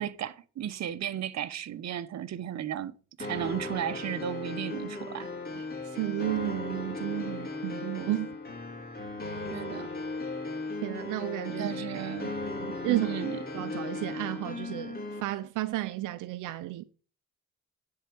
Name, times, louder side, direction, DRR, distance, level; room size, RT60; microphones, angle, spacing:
voice 1, 0.0-5.3 9.5-9.9 11.6-12.3 12.9-13.4, right 10 dB, 60° right, 1.1 m, -34 dB
sound 1, 3.2-15.2, left 3 dB, 30° left, 3.2 m, -37 dB
voice 2, 5.9-8.3 10.8-11.7 12.6-13.1 13.5-16.8, right 16 dB, 85° right, 0.8 m, -32 dB
10.0 x 4.8 x 7.8 m
cardioid pair, 90°, 30 cm